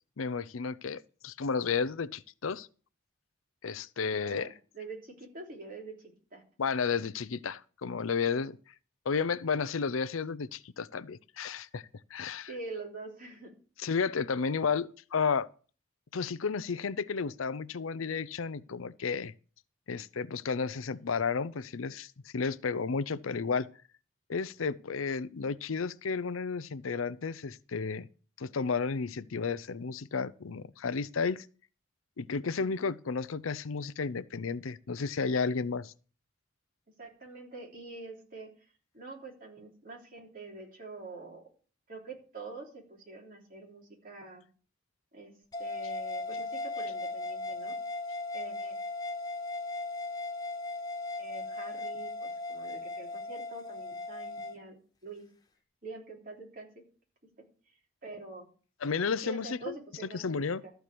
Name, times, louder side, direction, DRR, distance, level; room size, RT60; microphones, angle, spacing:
voice 1, 0.2-2.7 3.6-4.5 6.6-8.6 9.1-11.8 12.1-12.5 13.8-15.5 16.1-19.3 19.9-23.7 24.3-28.1 28.4-31.5 32.2-35.9 58.8-59.7 60.1-60.6, left 5 dB, 90° left, 0.6 m, -32 dB
voice 2, 4.2-6.4 12.5-13.5 37.0-38.7 38.9-41.4 41.9-44.5 45.1-45.3 45.6-47.7 48.3-48.8 51.2-55.2 55.8-56.7 58.0-58.5 59.2-60.7, right 3 dB, 45° right, 3.4 m, -45 dB
sound 1, 45.5-54.6, left 2 dB, 20° left, 1.0 m, -37 dB
13.5 x 4.6 x 8.4 m
head